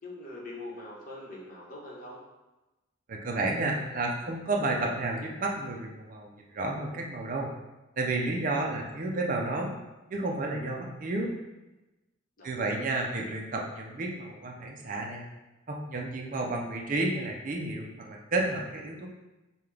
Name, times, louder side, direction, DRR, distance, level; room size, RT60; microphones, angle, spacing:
voice 1, 0.0-2.2 12.4-12.9, left 2 dB, 40° left, -4 dB, 1.0 m, -43 dB
voice 2, 3.1-7.5 8.0-9.8 10.1-11.3 12.4-15.2 15.7-19.1, right 2 dB, 40° right, 0 dB, 0.4 m, -31 dB
5.5 x 2.2 x 3.3 m, 1.0 s
head